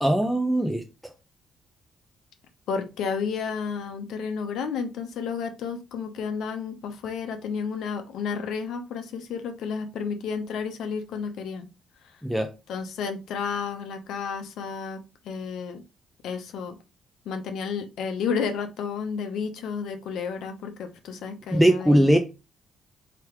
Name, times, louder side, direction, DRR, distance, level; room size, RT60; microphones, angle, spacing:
voice 1, 0.0-0.8 12.2-12.5 21.5-22.2, right 1 dB, 5° right, 0.5 m, -20 dB
voice 2, 2.7-11.7 12.7-15.8 16.2-16.8 17.3-22.1, left 6 dB, 80° left, 0.8 m, -31 dB
3.3 x 3.0 x 4.5 m
cardioid pair, 90°, 0 cm